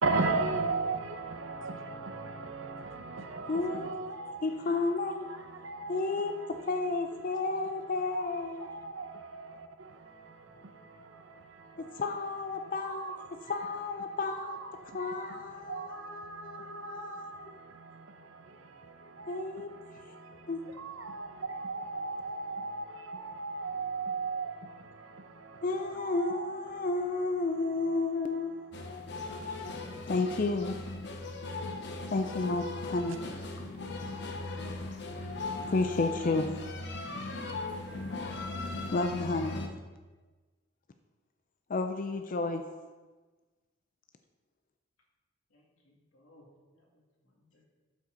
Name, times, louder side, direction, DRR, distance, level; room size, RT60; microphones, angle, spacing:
voice 1, 0.0-6.8 7.2-12.0 12.5-13.7 14.0-29.5 37.0-37.6 37.9-38.5, right 3 dB, 75° right, 0.8 m, -38 dB
voice 2, 3.5-3.9 4.4-5.3 5.9-8.7 11.8-13.1 13.5-14.6 14.9-17.5 19.3-19.7 20.5-20.6 25.6-28.5 30.1-30.7 32.1-33.2 35.5-36.5 38.9-39.6 41.7-42.6, left 3 dB, 40° left, 0.4 m, -32 dB
sound 1, 28.7-39.7, left 3 dB, 60° left, 1.0 m, -38 dB
voice 3, 45.5-46.5 46.7-47.7, left 1 dB, 90° left, 2.2 m, -64 dB
12.0 x 5.6 x 3.9 m
head